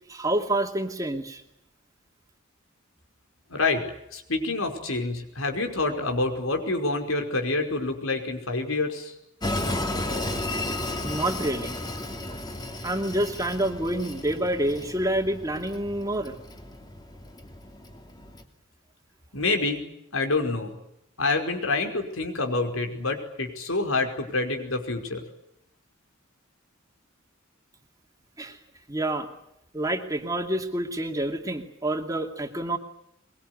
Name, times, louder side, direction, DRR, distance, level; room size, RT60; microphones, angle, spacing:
voice 1, 0.1-1.4 10.7-11.8 12.8-16.4 28.4-28.6 28.9-29.3 29.7-32.8, right 1 dB, 15° right, 4 dB, 2.5 m, -28 dB
voice 2, 3.5-3.8 4.1-9.2 19.3-19.9 20.1-20.8 21.2-25.2, left 3 dB, 85° left, 4 dB, 5.3 m, -27 dB
Train, 9.4-18.4, left 1 dB, 20° left, 3.0 m, -34 dB
23.5 x 22.5 x 9.8 m, 0.79 s
head